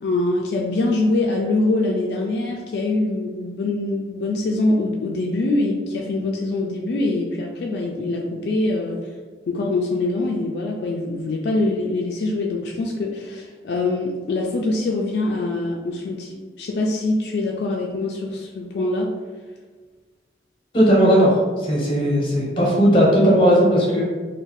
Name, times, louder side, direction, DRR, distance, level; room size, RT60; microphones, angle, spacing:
voice 1, 0.0-9.0 9.5-19.1, left 2 dB, 65° left, -1 dB, 0.3 m, -24 dB
voice 2, 20.7-24.1, equal, 30° left, -4 dB, 0.8 m, -17 dB
2.6 x 2.1 x 3.9 m, 1.4 s
head